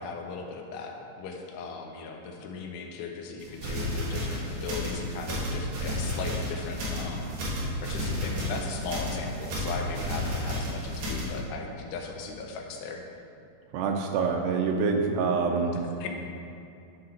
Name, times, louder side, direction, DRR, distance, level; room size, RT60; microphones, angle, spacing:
voice 1, 0.0-13.0 15.7-16.1, left 4 dB, 85° left, 2 dB, 2.9 m, -38 dB
sound 1, 3.4-11.4, left 1 dB, 60° right, 2.0 m, -32 dB
voice 2, 13.7-15.7, right 5 dB, 85° right, 3 dB, 2.8 m, -26 dB
11.0 x 3.9 x 4.4 m, 2.6 s
omnidirectional pair, 4.8 m